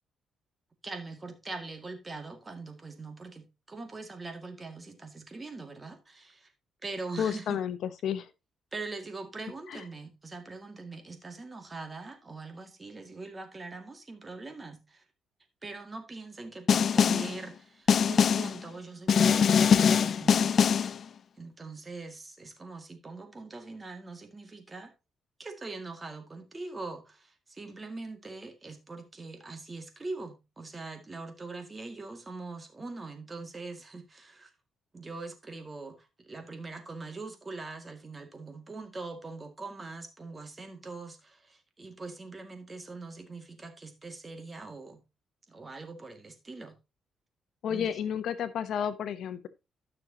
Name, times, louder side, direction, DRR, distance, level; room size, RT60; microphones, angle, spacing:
voice 1, 0.8-6.5 6.8-7.6 8.7-15.0 15.6-20.6 21.4-24.9 25.4-34.5 34.9-45.0 45.5-46.8 47.7-47.9, right 3 dB, 25° right, 2.1 m, -42 dB
voice 2, 7.2-8.3 9.7-9.8 47.6-49.5, left 8 dB, 70° left, 0.9 m, -31 dB
Snare drum, 16.7-17.4 17.9-18.6 19.1-21.0, left 7 dB, 55° left, 0.5 m, -22 dB
12.5 x 6.5 x 2.9 m
cardioid pair, 90°, 0 cm